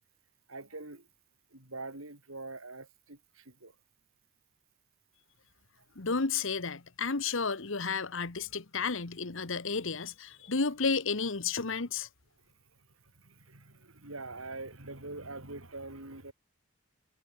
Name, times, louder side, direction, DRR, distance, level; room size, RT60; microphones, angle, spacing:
voice 1, 0.5-1.1 1.5-3.7 10.4-10.5 12.7-16.3, right 2 dB, 75° right, 5.7 m, -44 dB
voice 2, 5.9-12.1, left 4 dB, 65° left, 1.3 m, -32 dB
head